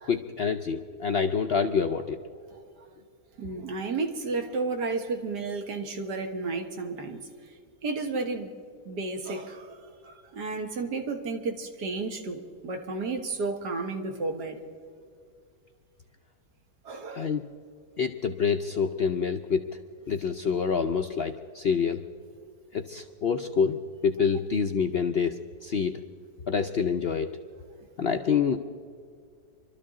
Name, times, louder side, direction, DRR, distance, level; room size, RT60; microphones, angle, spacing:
voice 1, 0.1-2.2 17.1-17.4 18.0-19.6 20.1-22.1 22.7-23.8 24.0-26.0 26.5-27.3 28.0-28.6, left 6 dB, 65° left, 6 dB, 0.6 m, -27 dB
voice 2, 3.4-7.2 7.8-8.5 8.9-14.6 16.9-17.3, right 3 dB, 85° right, 4 dB, 2.0 m, -32 dB
25.0 x 13.0 x 3.7 m, 2.2 s
omnidirectional pair, 1.7 m